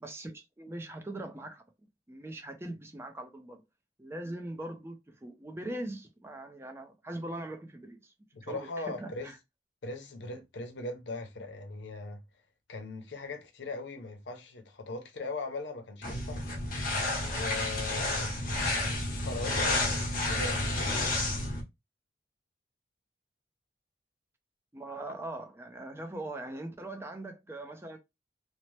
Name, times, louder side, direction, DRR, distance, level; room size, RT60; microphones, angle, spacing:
voice 1, 0.0-1.6 2.1-3.6 4.0-8.1 8.4-9.4 24.7-28.0, right 1 dB, 15° right, 0.5 m, -41 dB
voice 2, 8.3-9.3 9.8-12.2 12.7-16.4 17.2-18.4 19.2-21.2, left 2 dB, 90° left, 0.6 m, -40 dB
sound 1, 16.0-21.6, left 2 dB, 50° left, 0.9 m, -30 dB
2.8 x 2.0 x 3.1 m
head